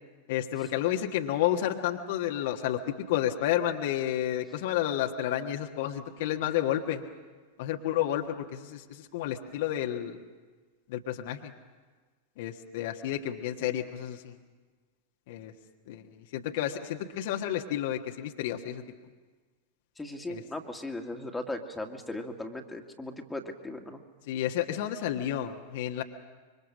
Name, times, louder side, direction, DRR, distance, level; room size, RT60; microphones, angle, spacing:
voice 1, 0.3-7.0 7.6-10.2 10.9-11.5 12.4-14.3 15.3-15.5 15.9-18.8 20.3-20.4 24.3-26.0, left 11 dB, 50° left, 3 dB, 1.4 m, -31 dB
voice 2, 20.0-24.0, left 1 dB, 5° left, 2 dB, 2.1 m, -38 dB
26.0 x 24.0 x 6.4 m, 1.4 s
figure-of-eight pair, 90°, 0 cm